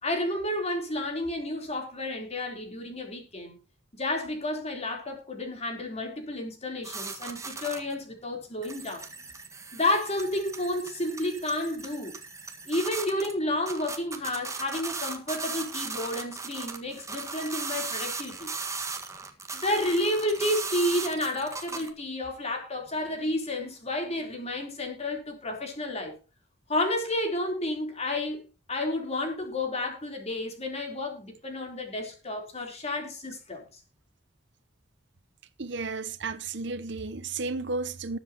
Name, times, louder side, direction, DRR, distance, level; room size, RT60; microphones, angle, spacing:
voice 1, 0.0-3.6 3.9-9.0 9.7-12.2 12.7-18.5 19.5-26.2 26.7-33.8, left 1 dB, 35° left, 3.8 m, -31 dB
sound 1, 6.8-7.9 8.3-8.4 8.6-13.3 13.7-21.9, right 4 dB, 15° right, 1.7 m, -37 dB
voice 2, 35.6-38.2, right 3 dB, 65° right, 0.9 m, -33 dB
19.5 x 8.0 x 3.0 m
head